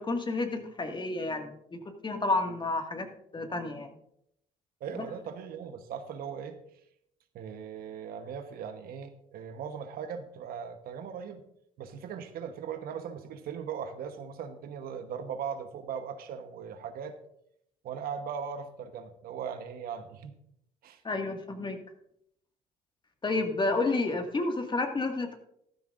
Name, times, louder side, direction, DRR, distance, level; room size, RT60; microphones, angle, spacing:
voice 1, 0.0-3.1 3.3-3.9 21.0-21.8 23.2-25.4, left 3 dB, 30° left, 4 dB, 1.9 m, -30 dB
voice 2, 4.8-6.6 7.3-11.4 11.8-17.2 17.8-20.4 20.8-21.0, right 7 dB, 65° right, 8 dB, 1.1 m, -39 dB
14.0 x 12.5 x 2.5 m, 0.74 s
supercardioid pair, 65°, 16 cm